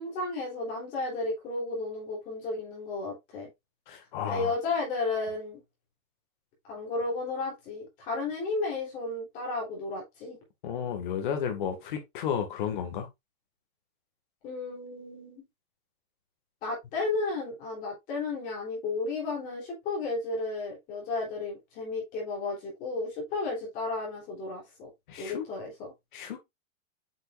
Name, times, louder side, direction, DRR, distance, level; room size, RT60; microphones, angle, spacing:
voice 1, 0.0-3.5 4.3-5.6 6.7-10.4 14.4-15.4 16.6-24.9 25.2-25.9, left 3 dB, 20° left, 3.3 m, -33 dB
voice 2, 3.9-4.5 10.6-13.1 25.1-25.4 26.1-26.4, left 8 dB, 35° left, 1.9 m, -32 dB
7.8 x 5.7 x 2.5 m
hypercardioid pair, 180°, 41 cm